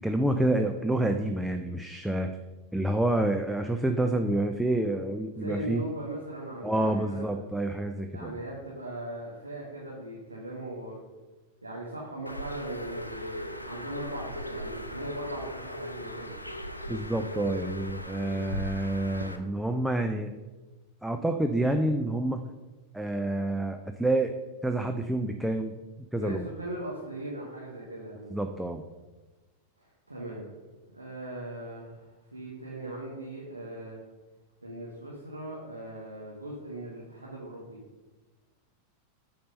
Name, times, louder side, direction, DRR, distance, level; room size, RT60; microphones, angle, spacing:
voice 1, 0.0-2.3 2.7-5.8 6.6-8.4 16.9-20.3 21.0-22.4 22.9-24.3 24.6-25.7 26.1-26.5 28.3-28.8, right 1 dB, 5° right, 5 dB, 0.4 m, -28 dB
voice 2, 5.3-7.3 8.1-11.0 11.6-13.4 13.6-16.3 26.1-28.3 29.8-30.5 30.9-34.0 34.6-37.8, right 1 dB, 80° right, -4 dB, 1.3 m, -39 dB
Bird, 12.3-19.4, equal, 85° left, 0.6 m, -38 dB
8.5 x 4.3 x 5.3 m, 1.2 s
figure-of-eight pair, 90°, 0 cm